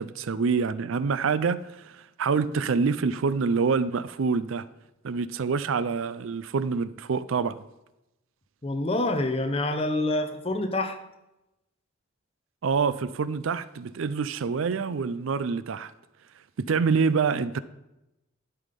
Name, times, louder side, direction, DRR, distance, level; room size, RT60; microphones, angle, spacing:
voice 1, 0.0-4.6 5.0-7.6 12.6-15.9 16.6-17.6, right 5 dB, 75° right, 0.4 m, -26 dB
voice 2, 8.6-11.0, left 2 dB, 30° left, 0.8 m, -27 dB
11.0 x 5.8 x 5.2 m
head